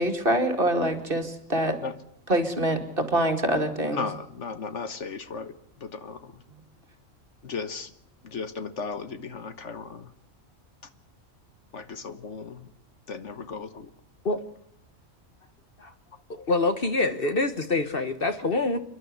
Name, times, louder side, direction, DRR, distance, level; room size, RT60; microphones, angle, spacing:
voice 1, 0.0-1.8 2.3-4.0 6.5-6.6, right 1 dB, 45° right, 2.6 m, -25 dB
voice 2, 3.9-6.4 7.4-7.9 8.2-10.1 11.7-12.7 13.1-13.9, left 5 dB, 60° left, 1.5 m, -36 dB
voice 3, 16.3-18.8, left 2 dB, 45° left, 1.4 m, -25 dB
29.0 x 11.5 x 9.5 m
omnidirectional pair, 1.4 m